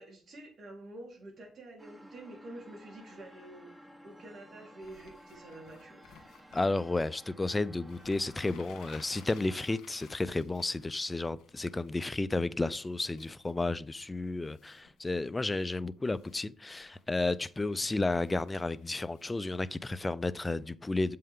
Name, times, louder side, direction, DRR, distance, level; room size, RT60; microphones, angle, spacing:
voice 1, 0.0-6.0, right 1 dB, 55° right, 3.9 m, -48 dB
sound 1, 1.8-9.8, equal, 10° right, 1.1 m, -55 dB
sound 2, 4.8-6.6 7.5-7.6 7.8-12.2 12.6-13.5 14.4-15.0 15.4-15.8 16.0-16.4 16.8-19.9, left 7 dB, 85° left, 1.5 m, -58 dB
voice 2, 6.5-21.2, left 2 dB, 20° left, 0.4 m, -32 dB
7.6 x 5.6 x 3.6 m
cardioid pair, 90°, 0 cm